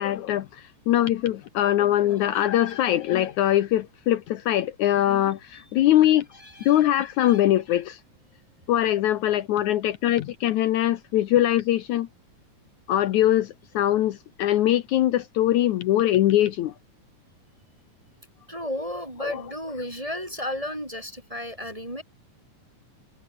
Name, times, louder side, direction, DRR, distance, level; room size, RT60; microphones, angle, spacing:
voice 1, 0.0-6.3 6.7-8.0 8.7-12.1 12.9-16.7 19.2-19.4, left 13 dB, 70° left, 2.2 m, -22 dB
voice 2, 6.3-6.9 7.2-7.4 18.5-22.0, left 1 dB, 10° right, 2.7 m, -33 dB
omnidirectional pair, 3.7 m